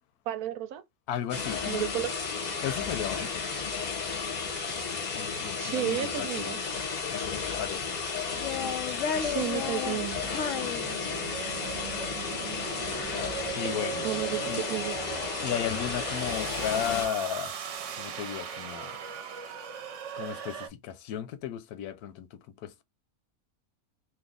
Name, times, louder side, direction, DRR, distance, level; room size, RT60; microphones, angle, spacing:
voice 1, 0.3-0.8 1.7-2.1 5.6-6.6 9.2-10.2 14.0-15.0, right 12 dB, 85° right, 1.1 m, -32 dB
voice 2, 1.1-1.6 2.6-3.5 5.1-6.5 7.1-7.8 13.6-14.1 14.5-14.6 15.4-17.6 18.0-19.0 20.1-22.8, left 10 dB, 90° left, 1.1 m, -34 dB
sound 1, 1.3-17.1, left 5 dB, 40° left, 0.7 m, -33 dB
Child speech kid speaking, 4.6-6.2 7.0-7.9 8.3-11.5, left 7 dB, 70° left, 0.9 m, -36 dB
sound 2, 10.2-20.7, right 7 dB, 65° right, 0.9 m, -38 dB
2.8 x 2.5 x 3.7 m
omnidirectional pair, 1.5 m